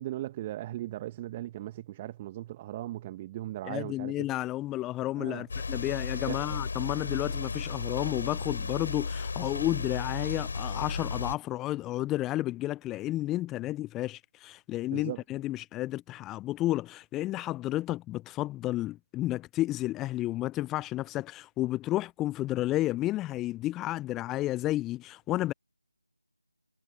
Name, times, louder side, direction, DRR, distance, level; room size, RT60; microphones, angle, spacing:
voice 1, 0.0-4.3 5.2-5.4 6.3-6.4 14.9-15.2, right 14 dB, 15° right, 1.5 m, -38 dB
voice 2, 3.6-25.5, left 16 dB, 10° left, 0.4 m, -32 dB
sound 1, 5.5-11.3, left 4 dB, 45° left, 6.0 m, -34 dB
figure-of-eight pair, 160°, 0 cm